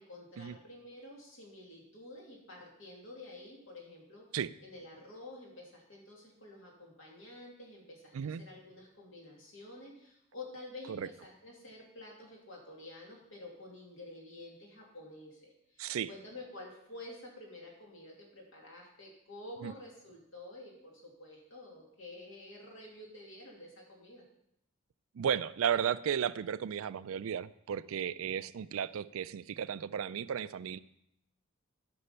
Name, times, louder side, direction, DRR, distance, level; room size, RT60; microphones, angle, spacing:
voice 1, 0.0-4.3 4.6-24.2, left 2 dB, 65° left, -1 dB, 2.8 m, -50 dB
voice 2, 15.8-16.1 19.6-19.7 25.2-30.8, right 8 dB, 75° right, 16 dB, 0.4 m, -34 dB
9.8 x 6.2 x 5.6 m, 0.77 s
head